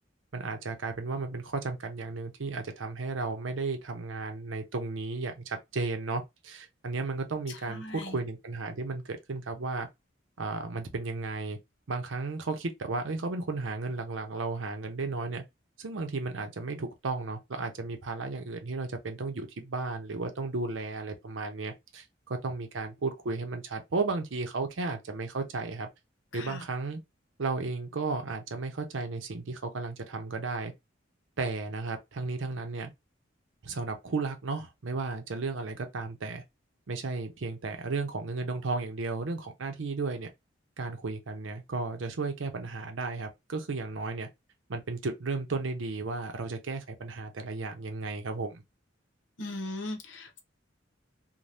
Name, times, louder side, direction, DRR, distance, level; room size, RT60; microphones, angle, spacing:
voice 1, 0.3-9.9 10.4-11.6 11.9-15.4 15.8-22.0 22.3-25.9 26.3-27.0 27.4-30.7 31.4-32.9 33.6-36.4 36.9-40.3 40.8-44.3 44.7-48.6, right 3 dB, 85° right, 0.7 m, -34 dB
voice 2, 7.5-8.2 26.3-26.7 49.4-50.4, left 2 dB, 70° left, 0.8 m, -39 dB
2.7 x 2.2 x 3.3 m
head